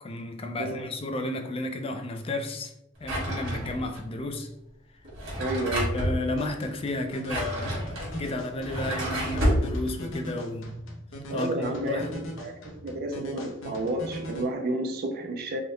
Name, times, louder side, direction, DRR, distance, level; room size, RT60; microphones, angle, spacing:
voice 1, 0.0-2.7 3.0-4.5 5.9-10.8 11.3-12.1, left 2 dB, 30° left, 0.3 m, -32 dB
Drawer open or close, 3.0-4.0 5.0-6.2 7.0-9.7, equal, 70° right, 1.4 m, -29 dB
voice 2, 5.4-5.9 11.3-12.1 12.4-15.6, right 1 dB, 50° right, 0.4 m, -31 dB
sound 1, 6.4-14.4, equal, 75° left, 0.7 m, -41 dB
3.6 x 2.1 x 3.1 m
head